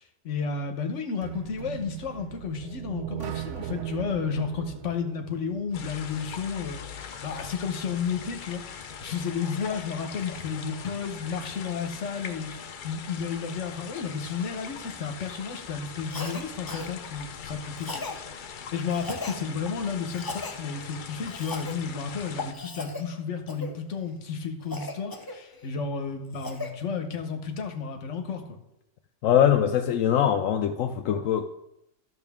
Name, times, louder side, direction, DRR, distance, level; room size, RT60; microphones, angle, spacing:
voice 1, 0.0-18.0 18.3-28.6, left 6 dB, 70° left, 5 dB, 1.3 m, -32 dB
sound 1, 1.2-6.1, right 11 dB, 70° right, 0.9 m, -38 dB
sound 2, 5.7-22.5, left 7 dB, 55° left, 0.6 m, -41 dB
Cough, 16.1-16.4 16.7-16.9 17.8-18.2 18.9-19.4 20.1-20.5 21.3-21.8 22.5-23.0 23.5-23.7 24.7-25.7 26.1-26.7, left 2 dB, 20° left, 0.7 m, -37 dB
voice 2, 29.2-31.4, left 9 dB, 85° left, 5 dB, 1.0 m, -22 dB
12.0 x 6.5 x 3.5 m, 0.85 s
omnidirectional pair, 1.3 m